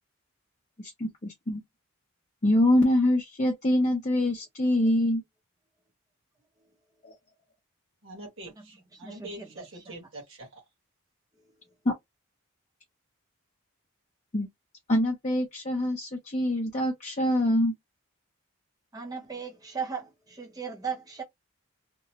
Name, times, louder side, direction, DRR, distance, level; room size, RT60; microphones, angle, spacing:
voice 1, 0.8-1.6 2.4-5.2 7.0-7.1 11.9-12.0 14.3-14.5 14.9-17.7, left 1 dB, 30° left, 0.6 m, -25 dB
voice 2, 8.0-10.6, right 1 dB, 55° right, 1.3 m, -44 dB
voice 3, 8.6-10.0 11.7-11.8 18.9-21.2, right 6 dB, 15° right, 0.7 m, -38 dB
2.9 x 2.1 x 2.7 m
head